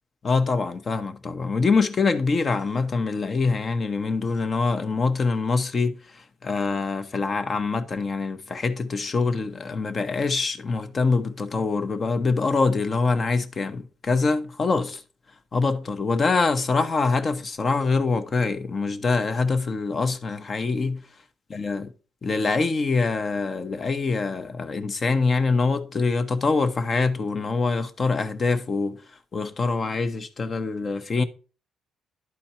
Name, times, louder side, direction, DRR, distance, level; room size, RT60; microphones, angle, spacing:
voice 1, 0.2-15.0 15.5-21.0 21.5-21.9 22.2-29.0 29.3-31.2, left 4 dB, 40° left, 0.9 m, -24 dB
11.0 x 4.3 x 4.4 m
cardioid pair, 90°, 0 cm